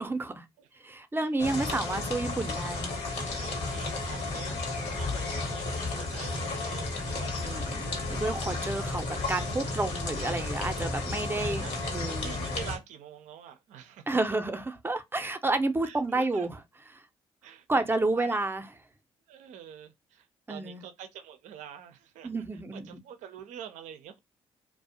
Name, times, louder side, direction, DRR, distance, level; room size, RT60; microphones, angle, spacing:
voice 1, 0.0-0.5 0.8-2.9 7.4-12.4 14.1-16.6 16.9-17.0 17.7-18.7 20.5-20.8 22.2-23.0, right 2 dB, 15° right, 0.5 m, -30 dB
sound 1, 1.4-12.8, left 3 dB, 70° left, 0.9 m, -33 dB
voice 2, 3.3-4.6 4.9-7.7 11.3-12.0 12.2-14.1 15.8-16.5 17.4-18.4 19.3-22.3 22.7-24.2, right 9 dB, 75° right, 0.4 m, -46 dB
2.4 x 2.0 x 2.6 m
hypercardioid pair, 45°, 13 cm